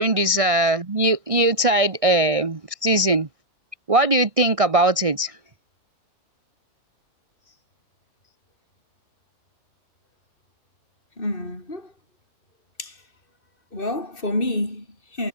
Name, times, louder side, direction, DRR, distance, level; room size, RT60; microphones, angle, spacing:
voice 1, 0.0-3.3 3.9-5.4, right 1 dB, 20° right, 1.0 m, -20 dB
voice 2, 11.2-11.9 12.8-13.0 13.7-15.3, left 1 dB, 25° left, 6.6 m, -28 dB
omnidirectional pair, 2.1 m